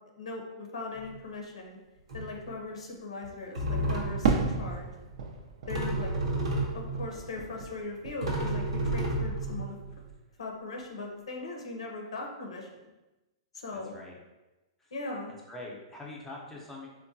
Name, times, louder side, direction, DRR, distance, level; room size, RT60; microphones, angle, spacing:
voice 1, 0.2-1.8 2.1-4.9 5.7-6.1 6.7-9.7 10.4-12.7 13.5-13.9 14.9-15.3, left 3 dB, 90° left, 1 dB, 0.7 m, -39 dB
sound 1, 1.0-1.2 2.1-2.5 3.2-3.3 3.5-4.4 5.7-7.1 7.8-7.9 8.2-10.1, right 1 dB, 85° right, 0.9 m, -31 dB
Fireworks, 4.2-8.6 8.9-9.7, right 4 dB, 60° right, 0.5 m, -33 dB
voice 2, 13.7-14.2 14.8-14.9 15.5-16.9, left 2 dB, 10° left, -3 dB, 0.6 m, -44 dB
3.6 x 2.2 x 2.6 m, 1.1 s
hypercardioid pair, 135°, 3 cm